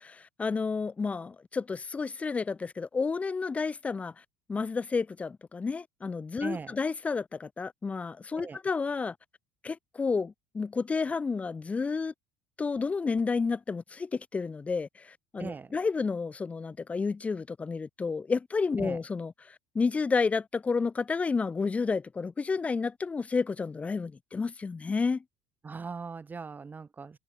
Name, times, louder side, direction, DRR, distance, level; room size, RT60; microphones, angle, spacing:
voice 1, 0.0-4.1 4.5-9.1 9.6-12.1 12.6-19.3 19.7-25.2, left 4 dB, 20° left, 0.4 m, -31 dB
voice 2, 6.4-6.8 8.4-8.6 15.4-15.7 18.8-19.0 25.6-27.2, right 5 dB, 25° right, 4.2 m, -39 dB
supercardioid pair, 105°, 7 cm